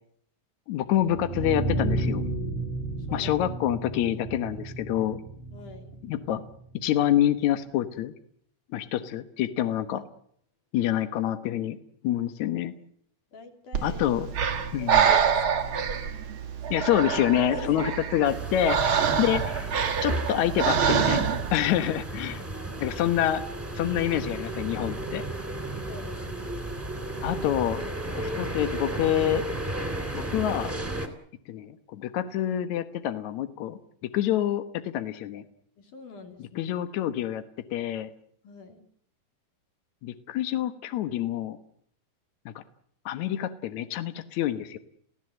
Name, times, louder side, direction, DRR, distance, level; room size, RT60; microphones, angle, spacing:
voice 1, 0.7-2.2 3.1-5.2 6.0-6.4 6.7-8.1 8.7-10.0 10.7-11.8 12.0-12.7 13.8-14.3 14.7-15.1 16.7-19.7 20.0-22.4 22.8-23.4 23.7-25.2 27.2-27.8 28.1-29.4 30.1-30.7 31.5-33.8 34.1-35.4 36.5-37.4 37.7-38.1 40.0-41.6 42.4-42.6 43.0-44.8, left 11 dB, 75° left, 10 dB, 1.7 m, -27 dB
sound 1, 0.9-7.0, right 2 dB, 30° left, 3.2 m, -32 dB
voice 2, 3.0-3.3 5.5-6.0 13.3-14.0 14.5-16.3 17.5-17.9 22.2-23.0 25.9-26.6 35.8-36.7 38.4-38.8, left 3 dB, 50° left, 5 dB, 4.1 m, -44 dB
Breathing, 13.7-21.6, right 7 dB, 65° right, 1.3 m, -26 dB
sound 2, 18.2-31.1, right 1 dB, 5° right, 2.4 m, -34 dB
29.5 x 16.5 x 7.8 m, 0.65 s
omnidirectional pair, 5.0 m